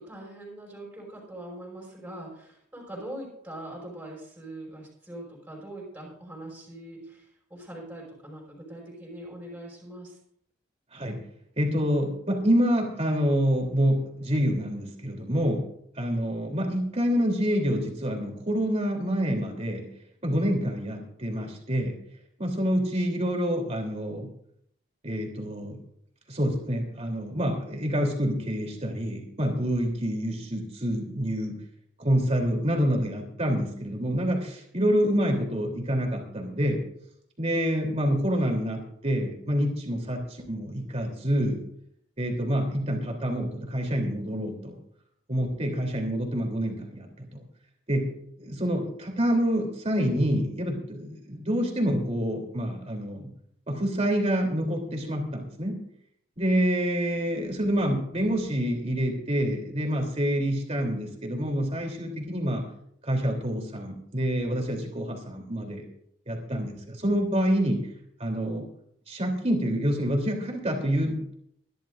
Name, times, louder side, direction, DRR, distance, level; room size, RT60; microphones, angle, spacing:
voice 1, 0.0-7.2 7.5-10.1, right 1 dB, 5° right, -3 dB, 5.7 m, -42 dB
voice 2, 11.6-15.6 16.0-19.9 20.2-21.9 22.4-24.3 25.0-25.8 26.3-31.5 32.0-36.8 37.4-41.6 42.2-44.8 45.3-47.4 47.9-48.1 48.4-53.3 53.7-55.8 56.4-62.6 63.1-65.8 66.3-67.8 68.2-68.7 69.1-71.4, equal, 30° right, 1 dB, 3.3 m, -27 dB
24.0 x 11.5 x 2.6 m, 0.71 s
head